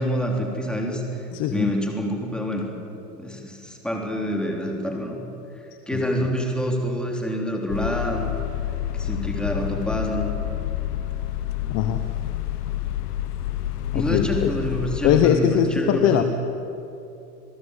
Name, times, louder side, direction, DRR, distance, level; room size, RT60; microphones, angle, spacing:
voice 1, 0.0-1.2 1.5-2.6 3.1-5.2 5.9-8.3 8.9-10.3 13.9-16.2, equal, ahead, 1 dB, 3.5 m, -26 dB
voice 2, 1.3-1.7 5.9-6.3 11.7-12.0 13.9-14.5 15.0-16.2, left 10 dB, 35° left, 8 dB, 1.2 m, -21 dB
sound 1, 7.7-15.3, left 12 dB, 70° left, 1.6 m, -28 dB
27.5 x 17.5 x 8.3 m, 2.8 s
hypercardioid pair, 135°, 48 cm